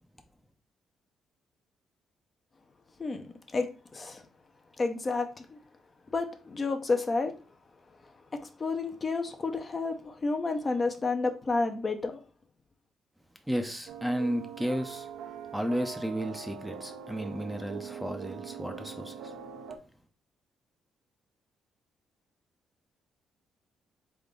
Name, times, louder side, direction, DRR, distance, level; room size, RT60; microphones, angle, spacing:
voice 1, 3.0-4.2 4.8-5.6 6.1-7.3 8.3-12.2, left 3 dB, 35° left, 0.7 m, -31 dB
voice 2, 13.5-15.1 15.5-19.3, equal, 5° right, 0.6 m, -33 dB
sound 1, 13.9-19.8, right 7 dB, 80° right, 0.6 m, -42 dB
3.8 x 3.6 x 3.7 m
cardioid pair, 90°, 0 cm